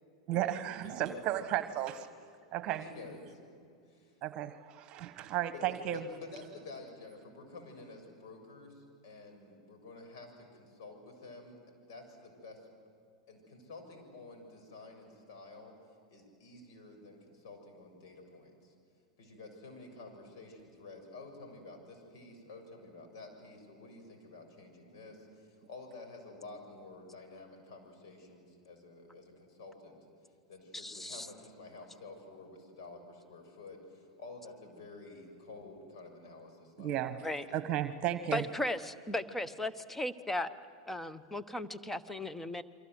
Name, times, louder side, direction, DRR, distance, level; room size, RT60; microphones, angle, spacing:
voice 1, 0.3-2.1 2.5-2.8 4.2-6.0 36.8-37.2 37.5-38.4, right 12 dB, 40° right, 12 dB, 1.3 m, -34 dB
voice 2, 0.8-1.6 2.7-3.4 3.9-4.2 5.5-5.6 5.9-11.6 11.9-12.7 13.3-15.8 16.1-18.7 19.2-30.0 30.5-37.0 37.4-37.7, left 3 dB, 60° left, 4 dB, 7.0 m, -50 dB
voice 3, 30.7-31.3 37.2-37.5 38.3-40.5 40.9-42.6, left 1 dB, 10° left, 13 dB, 1.2 m, -36 dB
28.5 x 24.5 x 8.1 m, 2.4 s
hypercardioid pair, 90°, 2 cm